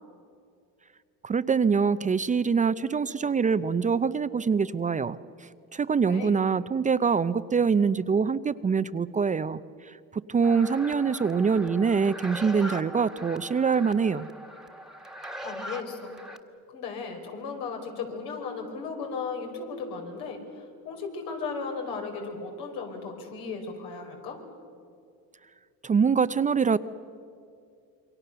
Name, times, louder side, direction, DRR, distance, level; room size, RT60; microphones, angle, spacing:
voice 1, 1.2-5.2 5.7-14.3 25.8-26.8, right 5 dB, 20° right, 13 dB, 0.5 m, -24 dB
sound 1, 10.4-16.4, equal, ahead, 1.5 m, -41 dB
voice 2, 15.4-16.1 16.7-24.4, left 4 dB, 85° left, 2 dB, 4.9 m, -36 dB
28.0 x 23.5 x 6.8 m, 2.4 s
cardioid pair, 115°, 37 cm